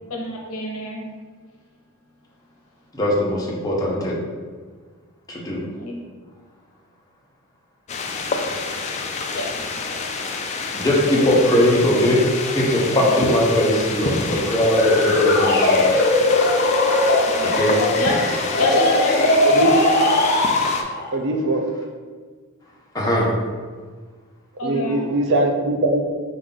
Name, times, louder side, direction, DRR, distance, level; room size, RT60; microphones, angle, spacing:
voice 1, 0.1-1.0 5.8-5.9 9.3-9.6 13.1-13.2 17.2-18.1 18.6-19.3 24.6-25.0, left 2 dB, 80° left, -1 dB, 1.0 m, -26 dB
voice 2, 2.9-4.2 5.3-5.6 10.7-12.2 12.5-16.0 17.5-17.8 22.9-23.3, left 1 dB, 15° left, -4 dB, 0.9 m, -20 dB
sound 1, 7.9-20.8, left 4 dB, 30° left, 0.4 m, -28 dB
sound 2, 14.6-21.1, left 2 dB, 50° left, 0.8 m, -19 dB
voice 3, 19.5-19.9 21.1-21.7 24.6-26.0, right 2 dB, 60° right, 3 dB, 0.5 m, -21 dB
4.7 x 2.6 x 3.8 m, 1.5 s
head